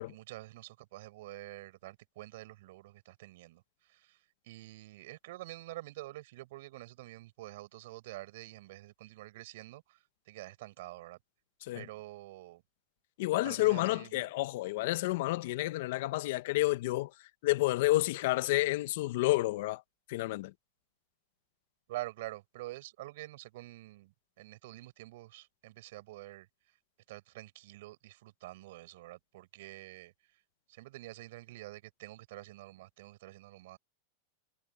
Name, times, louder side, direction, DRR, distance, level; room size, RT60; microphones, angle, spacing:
voice 1, 0.0-4.2 4.4-11.2 11.7-12.6 13.4-14.3 21.9-26.5 27.1-30.1 30.7-33.8, right 18 dB, 65° right, 7.9 m, -47 dB
voice 2, 13.2-17.1 17.4-19.8 20.1-20.5, left 18 dB, 65° left, 1.3 m, -30 dB
supercardioid pair, 130°, 0 cm